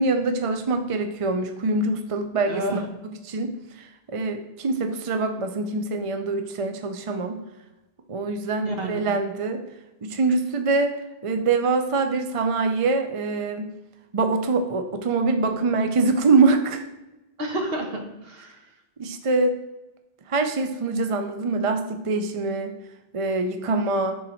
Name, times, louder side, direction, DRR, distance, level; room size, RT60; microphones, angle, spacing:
voice 1, 0.0-3.5 3.8-7.3 8.1-9.6 10.0-11.0 11.2-13.7 14.1-16.9 19.0-19.6 20.3-22.8 23.1-24.2, right 3 dB, 40° right, 6 dB, 0.6 m, -24 dB
voice 2, 2.5-2.9 8.6-9.1 17.4-18.6, right 1 dB, 70° right, 2 dB, 1.5 m, -30 dB
10.0 x 3.9 x 4.4 m, 1.0 s
omnidirectional pair, 1.0 m